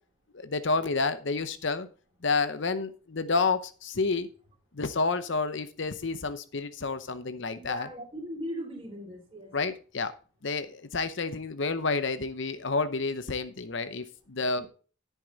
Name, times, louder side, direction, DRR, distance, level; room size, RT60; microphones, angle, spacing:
voice 1, 0.3-1.9 2.2-4.3 4.7-7.9 9.5-10.1 10.4-14.7, left 4 dB, 55° left, 12 dB, 0.8 m, -29 dB
voice 2, 7.5-9.5 14.5-14.7, equal, 25° right, 1 dB, 3.4 m, -39 dB
10.5 x 8.3 x 4.0 m, 0.38 s
head